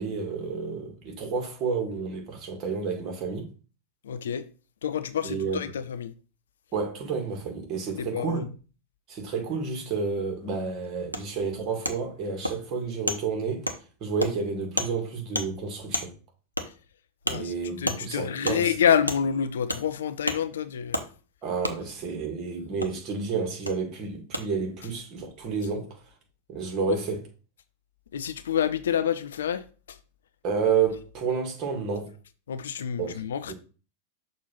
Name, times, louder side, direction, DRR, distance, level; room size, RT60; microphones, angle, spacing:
voice 1, 0.0-3.5 5.2-5.6 6.7-8.4 9.1-13.7 14.0-16.1 17.3-18.7 21.4-25.9 26.5-27.2 30.4-32.1 33.0-33.2 33.5-33.6, right 5 dB, 35° right, 2.1 m, -30 dB
voice 2, 4.0-4.4 4.8-6.1 8.0-8.5 17.3-21.0 28.1-30.0 32.5-33.5, left 8 dB, 65° left, 0.5 m, -28 dB
Wood, 11.1-11.2 11.8-12.0 12.4-12.6 13.1-13.2 13.7-13.8 14.2-14.3 14.8-14.9 15.3-15.5 15.9-16.1 16.6-16.7 17.3-17.4 17.9-18.0 18.4-18.6 19.1-19.2 19.7-19.8 20.3-20.4 20.9-21.1 21.6-21.8 22.8-22.9 23.7-23.8 24.3-24.4, equal, 90° right, 0.7 m, -29 dB
6.3 x 2.8 x 5.6 m
figure-of-eight pair, 90°, 0 cm